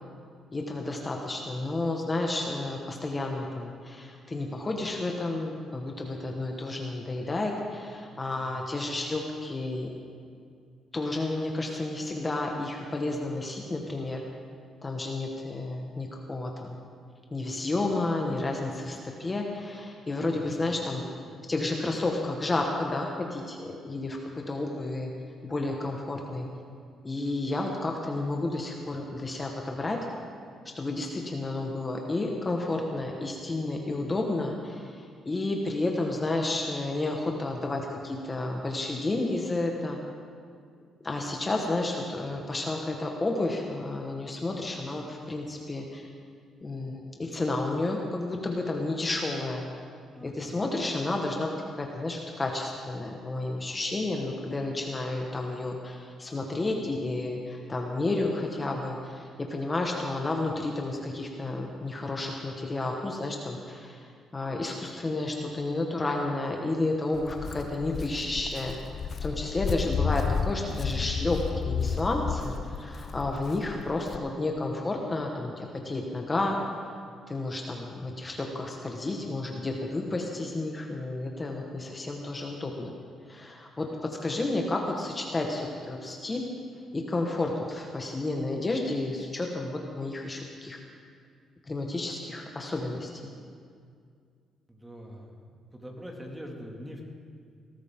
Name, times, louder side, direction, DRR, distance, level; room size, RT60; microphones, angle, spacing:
voice 1, 0.5-9.9 10.9-14.2 14.8-16.8 17.3-21.0 21.5-25.1 25.4-26.5 27.0-30.1 30.7-40.0 41.0-46.1 46.6-49.6 50.2-51.5 51.8-64.1 64.3-68.8 69.2-76.6 77.3-82.9 83.3-86.5 86.9-90.8 91.7-93.2, left 2 dB, 25° left, 1 dB, 1.4 m, -31 dB
voice 2, 20.2-20.8 21.2-21.4 50.1-50.6 94.7-95.4 95.7-97.0, equal, 15° right, 0 dB, 2.3 m, -44 dB
Walk footsteps, 67.1-74.2, left 6 dB, 50° left, 0.6 m, -32 dB
19.5 x 13.5 x 3.7 m, 2.2 s
cardioid pair, 90°, 0 cm